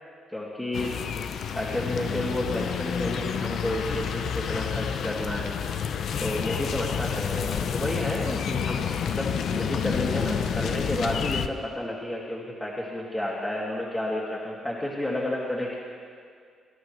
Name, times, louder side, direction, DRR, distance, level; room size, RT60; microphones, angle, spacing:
voice 1, 0.3-1.0 1.5-5.5 6.2-15.8, left 1 dB, 15° left, -5 dB, 2.3 m, -31 dB
sound 1, 0.7-11.5, left 7 dB, 70° left, 0.6 m, -29 dB
21.0 x 11.0 x 3.2 m, 2.1 s
supercardioid pair, 65°, 0 cm